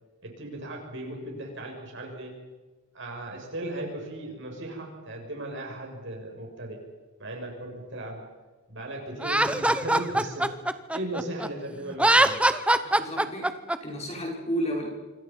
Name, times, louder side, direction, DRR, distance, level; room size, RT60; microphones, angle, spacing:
voice 1, 0.2-2.3 2.9-6.8 7.2-8.2 8.7-10.5 10.9-12.4, right 1 dB, 55° right, 1 dB, 7.2 m, -37 dB
Laughter, 9.2-11.5 11.9-13.8, right 1 dB, 5° right, 0.8 m, -22 dB
voice 2, 13.0-13.5 13.8-14.9, equal, 30° left, 0 dB, 5.6 m, -31 dB
27.0 x 24.5 x 5.7 m, 1.2 s
head